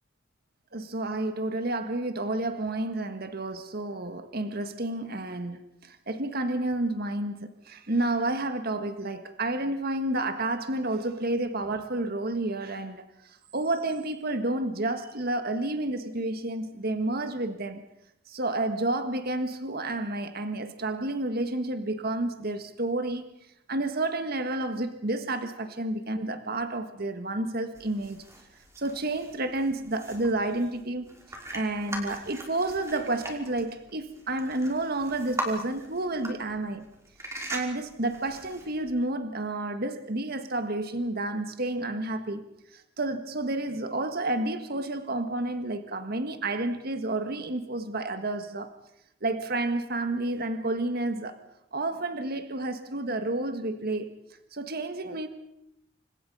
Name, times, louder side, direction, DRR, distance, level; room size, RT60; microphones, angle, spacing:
voice 1, 0.7-17.8 18.3-23.3 23.7-28.2 28.8-31.1 31.5-36.8 37.3-42.4 42.7-48.7 49.2-51.4 51.7-54.1 54.5-55.3, right 2 dB, 55° right, 1.7 m, -30 dB
sound 1, 27.7-38.9, right 1 dB, 15° right, 5.4 m, -41 dB
29.5 x 25.5 x 5.5 m
head